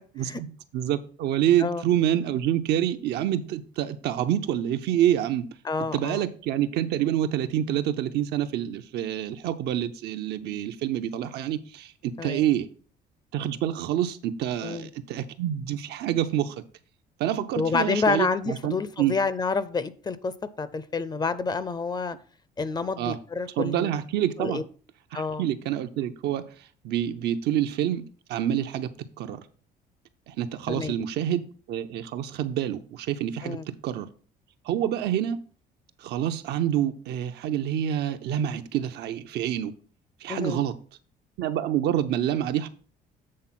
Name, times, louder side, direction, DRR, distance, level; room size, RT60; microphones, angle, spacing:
voice 1, 0.1-5.5 5.9-12.7 13.3-16.6 17.2-19.1 23.0-23.2 23.6-24.6 25.1-26.4 26.8-29.4 30.3-34.1 34.6-35.4 36.0-39.7 40.2-40.7 41.4-42.7, right 11 dB, 75° right, 0.7 m, -27 dB
voice 2, 5.6-6.2 12.2-12.4 14.6-14.9 17.6-20.3 20.6-22.2 22.6-23.9 24.4-24.6 25.1-25.4 30.7-31.0 33.4-33.6 40.3-40.6, left 4 dB, 25° left, 0.5 m, -28 dB
7.6 x 3.8 x 5.9 m
cardioid pair, 110°, 17 cm